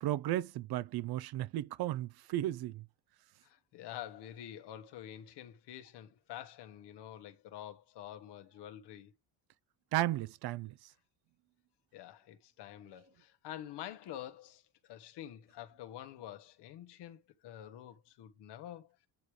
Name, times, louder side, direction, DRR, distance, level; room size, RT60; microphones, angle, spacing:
voice 1, 0.0-2.8 9.9-10.7, right 14 dB, 65° right, 0.6 m, -34 dB
voice 2, 3.4-9.1 11.9-18.9, left 11 dB, 80° left, 1.4 m, -48 dB
9.3 x 3.2 x 4.8 m
cardioid pair, 150°, 40 cm